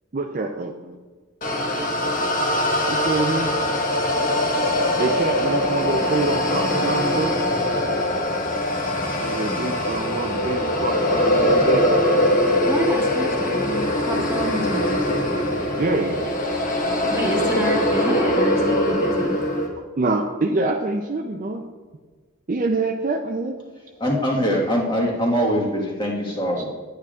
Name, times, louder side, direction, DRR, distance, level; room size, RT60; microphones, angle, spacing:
voice 1, 0.1-1.0 2.9-3.5 5.0-7.3 9.2-11.9 15.8-16.2 17.9-18.0 19.8-21.6 22.5-23.6 24.5-25.9 26.6-26.7, right 3 dB, 40° right, 4 dB, 0.4 m, -26 dB
sound 1, 1.4-19.7, left 1 dB, 40° left, 1.2 m, -22 dB
voice 2, 12.6-15.0 17.1-19.4, equal, 15° right, -2 dB, 1.4 m, -27 dB
voice 3, 24.0-26.7, equal, 20° left, -2 dB, 1.4 m, -22 dB
10.0 x 9.1 x 2.4 m, 1.4 s
head